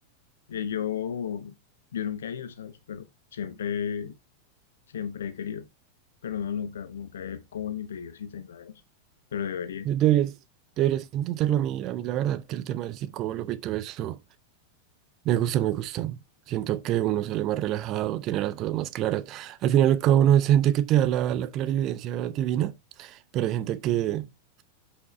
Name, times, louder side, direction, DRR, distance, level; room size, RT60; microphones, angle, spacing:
voice 1, 0.5-1.5 1.9-3.1 3.3-4.1 4.9-5.7 6.2-8.8 9.3-9.9, left 8 dB, 65° left, 1.0 m, -33 dB
voice 2, 9.8-10.3 10.8-14.2 15.2-16.2 16.5-24.3, right 11 dB, 35° right, 0.6 m, -25 dB
8.1 x 4.9 x 3.2 m
figure-of-eight pair, 90°, 0 cm